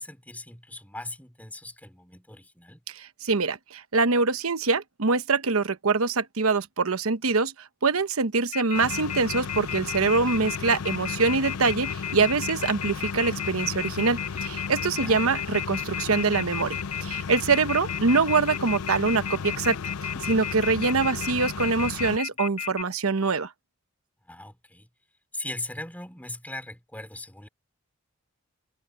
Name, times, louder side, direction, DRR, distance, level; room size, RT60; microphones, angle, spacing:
voice 1, 0.0-2.8 15.0-15.2 24.2-24.9 25.3-27.5, left 2 dB, 10° left, 2.8 m, -39 dB
voice 2, 3.0-7.5 7.8-23.5, right 4 dB, 75° right, 1.0 m, -24 dB
Telephone, 8.5-22.8, left 8 dB, 30° left, 1.2 m, -33 dB
sound 1, 8.7-22.2, left 5 dB, 85° left, 0.5 m, -35 dB
head